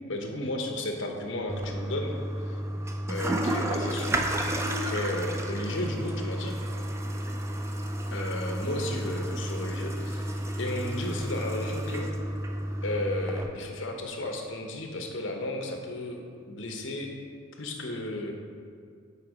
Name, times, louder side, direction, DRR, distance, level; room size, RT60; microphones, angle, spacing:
voice 1, 0.1-2.6 3.1-6.6 8.1-12.1 12.8-16.2 16.5-17.1 17.6-18.3, left 1 dB, 60° left, 2 dB, 0.9 m, -34 dB
Toilet flush, 1.5-13.5, right 1 dB, 15° right, 0.4 m, -31 dB
7.9 x 4.7 x 4.8 m, 2.2 s
head